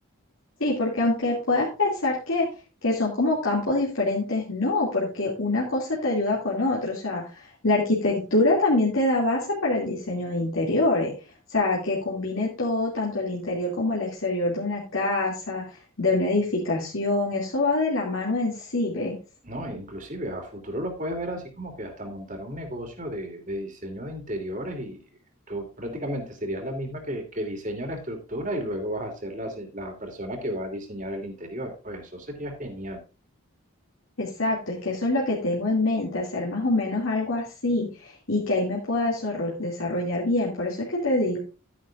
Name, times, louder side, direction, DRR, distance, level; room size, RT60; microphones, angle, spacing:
voice 1, 0.6-2.5 2.8-11.1 11.5-19.2 34.2-41.4, left 2 dB, 70° left, -4 dB, 2.6 m, -25 dB
voice 2, 19.4-25.0 25.5-33.0, equal, 40° right, 3 dB, 2.9 m, -33 dB
12.0 x 10.0 x 2.5 m, 0.31 s
head